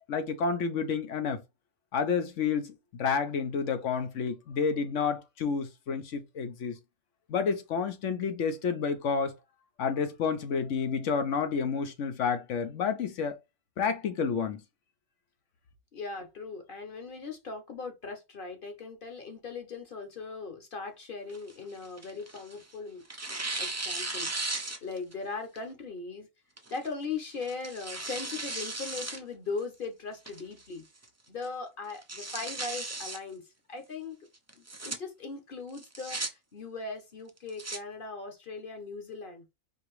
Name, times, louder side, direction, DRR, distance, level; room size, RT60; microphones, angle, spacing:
voice 1, 0.1-1.4 1.9-6.8 7.3-9.4 9.8-13.4 13.8-14.6, left 6 dB, 60° left, 1.1 m, -30 dB
voice 2, 15.9-23.0 23.6-24.3 24.8-26.3 26.7-30.8 31.3-33.4 33.7-34.3 34.6-39.4, left 4 dB, 40° left, 1.2 m, -39 dB
Tearing, 21.3-22.6 23.1-25.1 25.6-25.7 26.6-26.9 27.4-29.2 29.6-29.7 30.3-30.7 31.0-31.1 31.4-31.5 31.9-33.2 34.5-35.0 35.7-36.3 37.3-37.8, right 2 dB, 25° right, 0.3 m, -36 dB
4.7 x 2.9 x 3.1 m
omnidirectional pair, 1.5 m